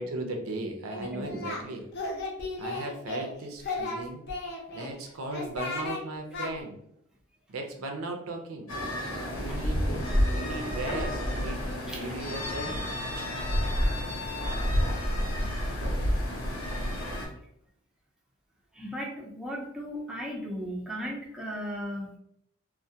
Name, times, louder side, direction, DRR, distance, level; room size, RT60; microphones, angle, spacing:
voice 1, 0.0-1.9 2.6-4.2 4.7-6.8 7.5-8.7 9.4-12.9, right 2 dB, 80° right, 3 dB, 0.5 m, -37 dB
Singing, 0.9-1.6 1.9-3.3 3.6-4.9 5.3-6.0 6.3-6.5, left 2 dB, 55° left, 0.6 m, -34 dB
voice 2, 1.0-1.4 9.3-9.7 11.9-12.0 12.5-12.6 18.7-22.2, equal, 5° right, -2 dB, 0.4 m, -36 dB
sound 1, 8.7-17.3, equal, 90° left, 0.9 m, -29 dB
2.2 x 2.1 x 2.6 m, 0.73 s
head